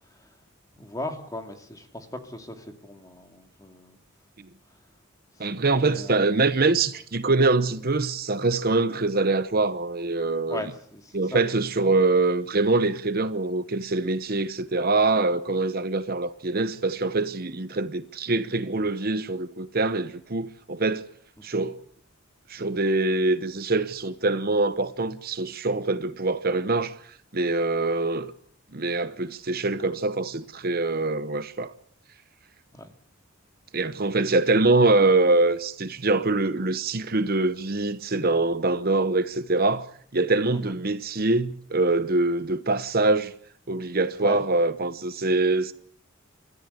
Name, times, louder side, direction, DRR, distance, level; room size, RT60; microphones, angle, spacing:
voice 1, 0.8-4.0 5.5-6.3 10.5-11.4 32.7-32.9 40.5-40.7 44.2-44.4, left 1 dB, 15° left, 2.5 m, -38 dB
voice 2, 5.4-10.6 11.1-21.0 21.4-21.8 22.5-26.9 27.3-28.3 28.7-31.7 33.7-39.9 40.1-43.3 43.7-45.7, right 3 dB, 45° right, 0.9 m, -24 dB
29.5 x 14.0 x 8.1 m
head